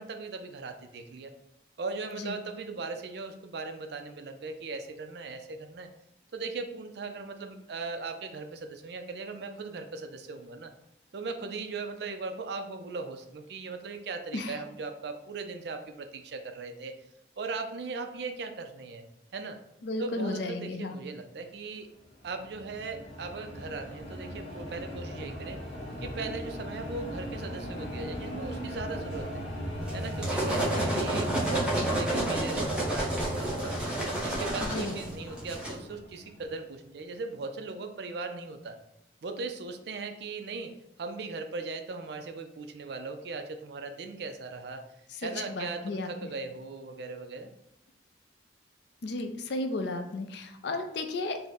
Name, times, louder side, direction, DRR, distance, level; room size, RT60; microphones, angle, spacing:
voice 1, 0.0-1.3 1.8-5.9 6.3-10.7 11.1-17.0 17.4-19.0 19.3-19.6 20.0-21.9 22.2-25.6 26.0-29.5 29.9-33.8 34.1-38.8 39.2-44.8 45.2-47.5, right 3 dB, 60° right, 6 dB, 0.4 m, -38 dB
voice 2, 19.8-21.0 34.6-34.9 45.2-46.1 49.0-51.4, left 2 dB, 65° left, 6 dB, 0.4 m, -33 dB
sound 1, 22.0-36.5, equal, 30° left, 0.9 m, -37 dB
sound 2, 29.9-35.7, right 1 dB, 5° right, 0.8 m, -30 dB
3.6 x 2.0 x 4.1 m, 0.78 s
head